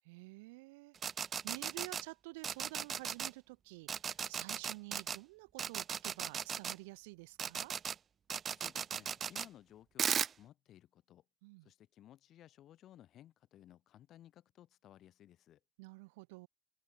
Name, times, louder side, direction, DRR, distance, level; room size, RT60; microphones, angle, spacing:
voice 1, 0.0-1.0 1.4-7.7 11.4-11.7 15.8-16.5, right 26 dB, 80° right, 1.4 m, -50 dB
sound 1, 1.0-2.0 2.4-3.3 3.9-5.2 5.6-6.7 7.4-7.9 8.3-9.5 10.0-10.3, right 7 dB, 25° right, 0.9 m, -36 dB
voice 2, 8.5-11.2 11.6-15.6, left 12 dB, 35° left, 3.6 m, -58 dB
cardioid pair, 165°, 0 cm